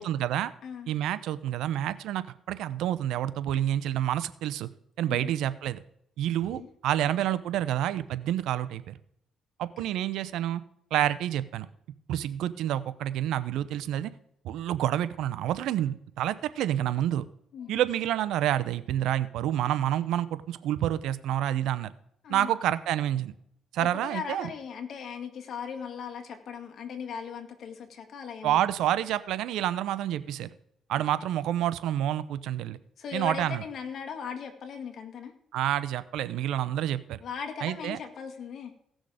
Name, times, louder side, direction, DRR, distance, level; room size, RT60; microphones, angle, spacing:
voice 1, 0.0-0.5 0.9-4.7 5.0-5.8 6.2-9.0 9.6-10.6 10.9-11.7 12.1-14.1 14.4-17.2 17.7-21.9 22.3-23.3 23.7-24.5 28.4-30.5 30.9-32.8 33.1-33.6 35.5-37.2 37.6-38.0, right 12 dB, 85° right, 15 dB, 0.7 m, -28 dB
voice 2, 23.8-28.6 30.9-31.0 33.0-35.3 37.2-38.7, left 6 dB, 65° left, 4 dB, 2.0 m, -38 dB
17.0 x 6.4 x 5.0 m, 0.72 s
cardioid pair, 90°, 0 cm